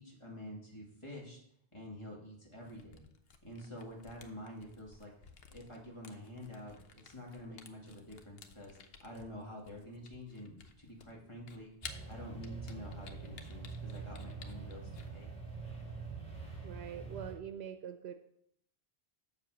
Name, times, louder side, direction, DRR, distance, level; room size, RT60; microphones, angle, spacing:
voice 1, 0.0-1.4 1.7-3.1 3.4-5.1 5.5-11.7 12.0-15.3, left 1 dB, 30° left, -3 dB, 2.6 m, -48 dB
Camera, 2.6-15.1, left 5 dB, 70° left, 1.1 m, -55 dB
sound 1, 11.8-17.3, right 4 dB, 5° left, 2.7 m, -45 dB
voice 2, 16.6-18.1, right 8 dB, 85° right, 7 dB, 0.9 m, -44 dB
7.4 x 7.4 x 6.2 m, 0.71 s
omnidirectional pair, 1.0 m